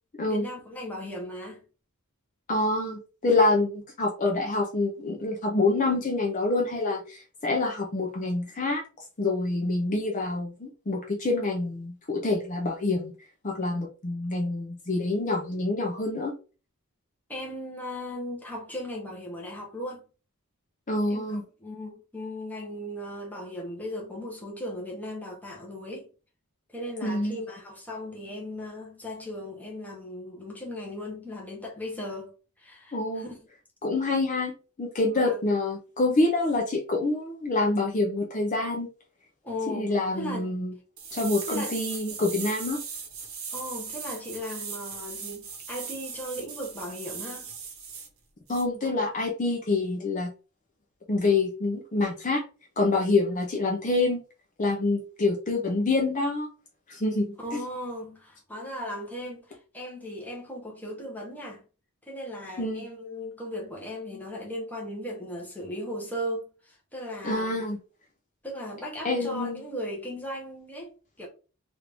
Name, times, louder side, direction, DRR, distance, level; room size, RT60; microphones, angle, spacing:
voice 1, 0.2-1.6 17.3-20.0 21.1-26.1 26.7-32.3 32.6-33.5 35.1-35.4 39.4-40.5 41.5-41.7 43.5-47.5 57.4-61.6 62.0-67.7 68.4-71.3, left 1 dB, 5° left, 0.9 m, -37 dB
voice 2, 2.5-8.8 9.2-13.1 13.4-16.3 20.9-21.4 27.0-27.4 32.9-33.2 33.8-34.5 34.8-38.9 39.7-40.7 41.1-42.8 48.5-50.3 51.1-52.4 52.8-54.2 54.6-56.5 56.9-57.6 62.6-62.9 67.2-67.8 69.0-69.6, left 2 dB, 35° left, 0.6 m, -26 dB
sound 1, 41.0-48.1 48.5-48.6, right 6 dB, 65° right, 0.9 m, -38 dB
3.1 x 2.5 x 3.3 m
head